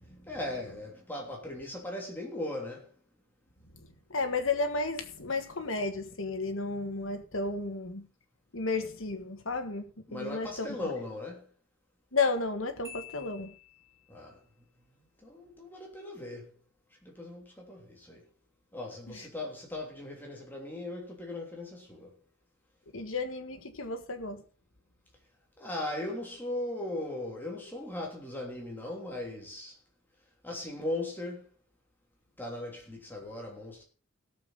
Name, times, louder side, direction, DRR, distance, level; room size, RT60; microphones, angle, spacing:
voice 1, 0.0-2.9 10.1-11.5 14.1-14.4 15.2-16.5 17.0-18.3 18.7-22.2 25.6-29.8 30.4-31.5 32.4-33.8, left 1 dB, 10° left, 3.0 m, -38 dB
voice 2, 4.1-8.1 8.5-10.9 12.1-13.5 19.1-19.3 22.9-24.4, left 3 dB, 80° left, 1.7 m, -33 dB
Marimba xylophone, 12.8-14.3, left 6 dB, 15° right, 1.8 m, -49 dB
17.5 x 7.2 x 4.0 m
head